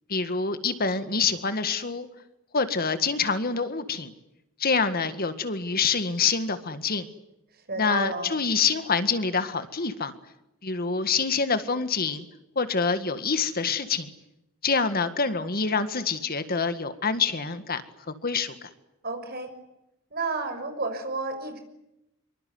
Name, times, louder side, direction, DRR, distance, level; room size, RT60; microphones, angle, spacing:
voice 1, 0.1-2.1 2.5-4.1 4.6-7.1 7.8-10.1 10.6-12.3 12.6-14.1 14.6-17.8 18.1-18.7, left 5 dB, 45° left, 11 dB, 1.8 m, -26 dB
voice 2, 7.7-8.3 19.0-19.5 20.1-21.6, right 3 dB, 45° right, 7 dB, 6.3 m, -31 dB
25.5 x 24.0 x 9.5 m, 0.88 s
head